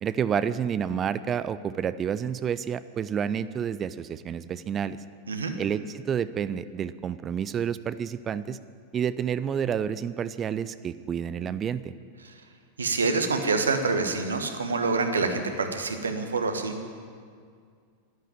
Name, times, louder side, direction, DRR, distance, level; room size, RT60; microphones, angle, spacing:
voice 1, 0.0-5.0 5.6-8.6 8.9-11.9, right 8 dB, 25° right, 15 dB, 0.4 m, -29 dB
voice 2, 12.8-16.8, right 3 dB, 70° right, 6 dB, 1.4 m, -26 dB
11.5 x 11.0 x 8.9 m, 2.1 s
figure-of-eight pair, 90°, 0 cm